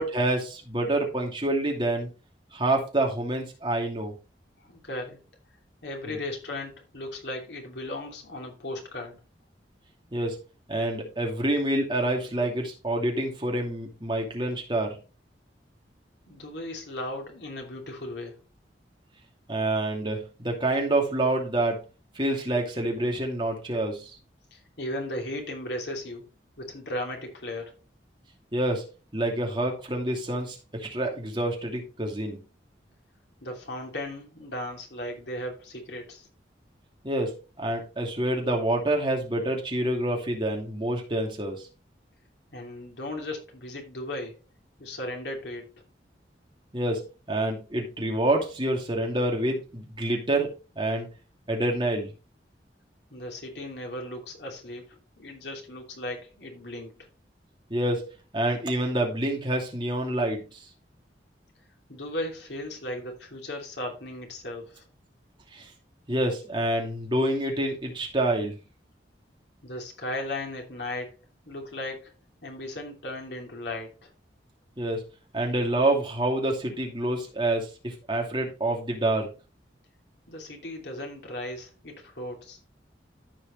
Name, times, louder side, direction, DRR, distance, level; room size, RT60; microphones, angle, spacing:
voice 1, 0.0-2.1 2.5-4.1 6.0-6.2 10.1-10.4 10.7-15.0 19.5-21.8 22.1-24.2 28.5-28.9 29.1-32.4 37.0-41.7 46.7-51.1 51.5-52.1 57.7-58.1 58.3-60.6 65.5-65.7 66.1-68.6 74.8-75.0 75.3-79.3, right 1 dB, 25° right, 2.6 m, -27 dB
voice 2, 4.6-5.2 5.8-9.2 16.3-18.4 24.5-26.3 26.6-27.8 33.4-36.3 42.5-44.4 44.8-45.7 53.1-57.1 61.9-64.8 69.6-71.2 71.4-72.1 72.4-74.1 80.3-82.6, left 1 dB, 75° left, 2.8 m, -36 dB
14.0 x 4.9 x 3.2 m
head